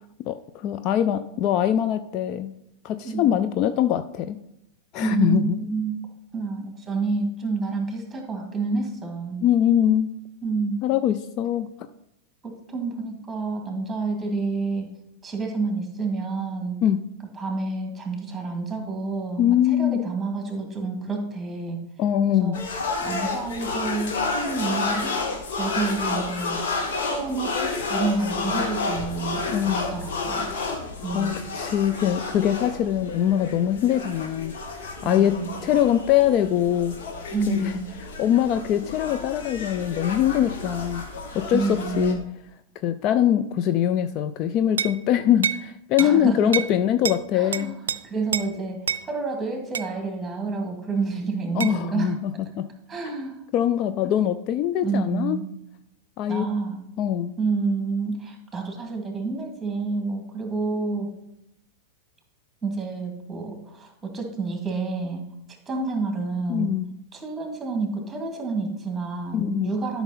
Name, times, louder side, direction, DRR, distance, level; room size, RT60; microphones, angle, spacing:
voice 1, 0.3-2.5 2.8-4.4 4.9-5.6 9.4-10.1 10.8-11.7 16.8-17.0 19.4-20.1 22.0-22.6 29.5-29.9 31.1-37.0 37.5-41.0 41.3-42.2 42.8-47.7 51.5-52.3 52.6-52.7 53.5-55.4 56.2-56.5 57.0-57.4 66.5-66.9 69.3-69.7, left 10 dB, 40° left, 10 dB, 0.4 m, -23 dB
voice 2, 5.0-6.1 6.3-9.4 10.4-10.8 12.4-14.9 15.2-16.8 17.4-21.8 22.3-22.6 23.0-25.2 25.5-26.6 27.0-30.5 31.0-31.4 35.0-35.7 37.3-38.0 41.5-42.2 46.0-46.7 47.3-47.7 48.0-52.2 52.9-53.4 54.8-55.5 56.3-56.8 57.4-61.1 62.6-65.2 65.7-66.7 67.1-70.0, right 4 dB, 10° right, 2 dB, 2.3 m, -29 dB
sound 1, 22.5-42.1, left 3 dB, 60° left, 1.7 m, -31 dB
sound 2, 44.8-45.0 45.4-45.6 46.0-46.1 46.5-46.7 47.0-47.2 47.5-48.0 48.3-48.5 48.9-49.0 49.7-49.9 51.6-51.8, right 7 dB, 70° right, 0.4 m, -27 dB
12.5 x 5.8 x 4.1 m, 0.81 s
figure-of-eight pair, 90°, 0 cm